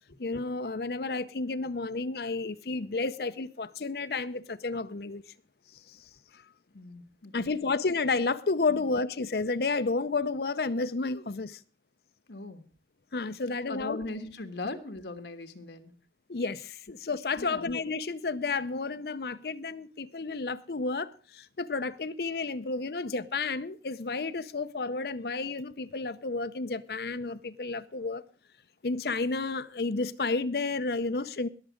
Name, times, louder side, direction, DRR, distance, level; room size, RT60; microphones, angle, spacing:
voice 1, 0.2-5.2 5.9-6.0 7.3-11.6 13.1-14.0 16.3-28.2 28.8-31.5, left 3 dB, 60° left, 0.6 m, -31 dB
voice 2, 6.7-7.7 8.7-8.8 12.3-12.6 13.7-15.9 17.4-17.7, left 2 dB, 80° left, 1.4 m, -39 dB
20.5 x 7.4 x 5.1 m
head